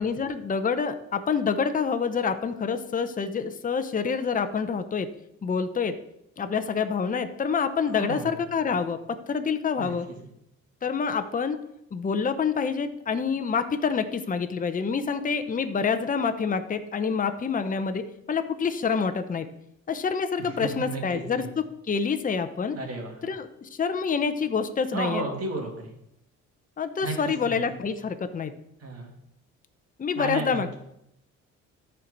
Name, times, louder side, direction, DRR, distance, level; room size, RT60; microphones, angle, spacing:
voice 1, 0.0-5.1 5.4-5.9 6.4-9.0 9.3-10.1 10.8-11.6 11.9-18.0 18.3-19.5 19.9-22.8 23.2-25.2 26.8-28.5 30.0-30.7, left 5 dB, 25° left, 8 dB, 0.7 m, -27 dB
voice 2, 7.9-8.3 9.8-9.9 20.4-21.5 22.7-23.1 24.9-25.9 27.0-27.1 27.5-27.6 28.8-29.1 30.2-30.6, right 3 dB, 55° right, 1 dB, 2.5 m, -33 dB
13.5 x 4.5 x 4.0 m, 0.79 s
cardioid pair, 90°, 30 cm